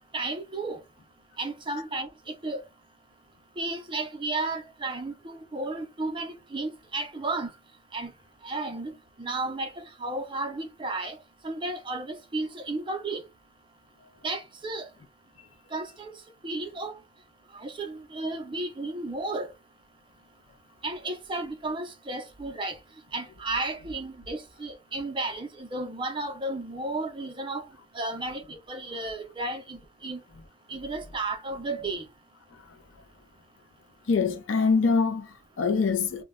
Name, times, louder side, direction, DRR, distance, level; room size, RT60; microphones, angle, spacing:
voice 1, 0.1-0.8 1.4-2.1 2.4-2.6 3.6-7.5 7.9-8.1 8.4-8.9 9.2-11.2 11.4-13.2 14.2-14.9 15.7-16.1 16.4-16.9 17.5-19.5 20.8-22.8 23.1-27.7 27.9-30.2 30.7-32.0, right 2 dB, 25° right, 0.5 m, -33 dB
voice 2, 34.1-36.2, left 4 dB, 70° left, 0.5 m, -25 dB
2.1 x 2.1 x 3.4 m
head